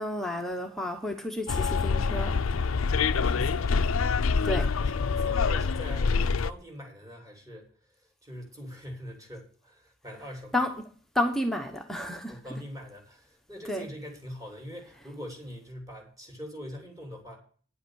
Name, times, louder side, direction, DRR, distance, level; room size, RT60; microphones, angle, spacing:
voice 1, 0.0-2.4 4.4-4.7 10.5-10.7 11.1-12.4 13.7-13.9, left 1 dB, ahead, 1.0 m, -31 dB
Bus, 1.5-6.5, left 5 dB, 75° left, 0.5 m, -26 dB
voice 2, 3.2-4.1 4.4-7.7 8.0-10.5 12.3-17.4, equal, 15° right, 3.2 m, -43 dB
10.0 x 8.1 x 6.3 m
head